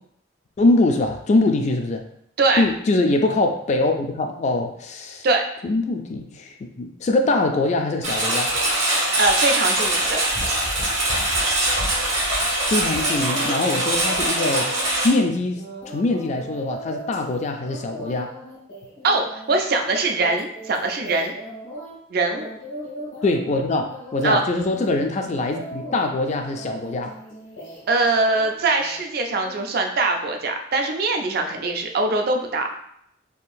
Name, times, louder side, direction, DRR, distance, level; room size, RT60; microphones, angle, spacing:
voice 1, 0.6-2.0 2.6-5.3 5.6-8.5 12.7-14.7 15.0-18.3 23.2-27.1, left 2 dB, 35° left, 4 dB, 0.3 m, -23 dB
Engine, 8.0-15.1, right 1 dB, 75° right, 1.2 m, -22 dB
voice 2, 9.2-10.2 19.0-21.4 22.1-22.5 24.2-24.4 27.9-32.6, right 3 dB, 50° right, 4 dB, 0.4 m, -22 dB
sound 1, 12.9-13.6 14.0-22.0 22.3-23.6 23.9-24.4 24.7-28.0 28.3-29.0 29.4-29.6, right 1 dB, 90° left, 1.4 m, -38 dB
3.6 x 2.3 x 2.5 m, 0.70 s
head